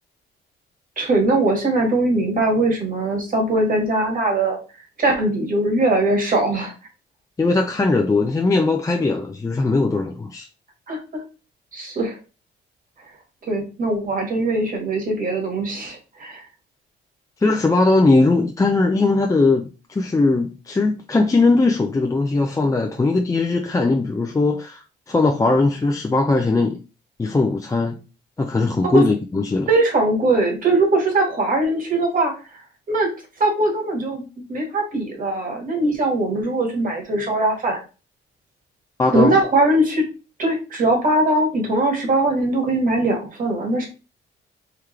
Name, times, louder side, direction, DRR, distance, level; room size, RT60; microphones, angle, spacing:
voice 1, 1.0-4.6 5.0-6.7 10.9-11.2 11.7-12.2 13.5-16.4 28.9-29.0 29.7-32.3 32.9-33.1 33.4-34.2 34.5-37.8 39.1-40.0 40.4-43.9, right 2 dB, 45° right, 1.8 m, -20 dB
voice 2, 7.4-10.5 17.4-26.8 27.2-28.0 28.4-29.7 39.0-39.4, left 3 dB, 15° left, 0.5 m, -19 dB
3.7 x 3.1 x 3.2 m
cardioid pair, 90°, 20 cm